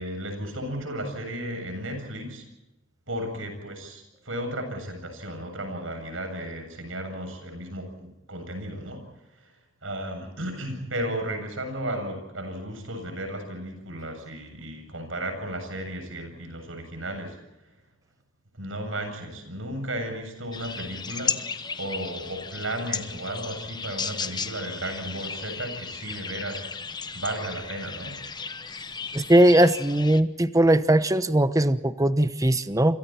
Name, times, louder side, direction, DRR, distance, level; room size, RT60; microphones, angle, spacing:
voice 1, 0.0-2.4 3.1-9.0 9.3-9.6 9.8-17.4 17.6-17.7 18.5-21.4 21.8-26.7 27.1-28.2, right 1 dB, 80° right, 6 dB, 7.7 m, -34 dB
sound 1, 20.5-30.2, left 5 dB, 20° left, 1.0 m, -35 dB
voice 2, 29.1-33.0, right 1 dB, 15° right, 12 dB, 1.0 m, -20 dB
29.0 x 26.5 x 4.4 m, 0.93 s
head